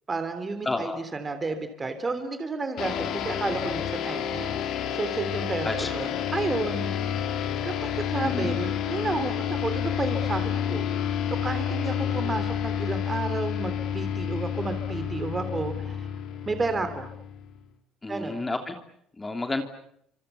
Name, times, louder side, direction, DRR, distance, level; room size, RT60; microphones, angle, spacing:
voice 1, 0.1-4.5 4.9-6.9 7.6-10.8 11.3-16.1 16.4-17.0 18.1-18.4, right 3 dB, 25° right, 9 dB, 3.4 m, -31 dB
voice 2, 0.6-1.0 5.6-5.9 8.2-8.6 18.0-18.7 19.2-19.6, left 2 dB, 15° left, 6 dB, 2.9 m, -30 dB
sound 1, 2.8-17.6, left 9 dB, 65° left, 3.4 m, -29 dB
29.5 x 26.0 x 7.0 m, 0.71 s
supercardioid pair, 95°, 0 cm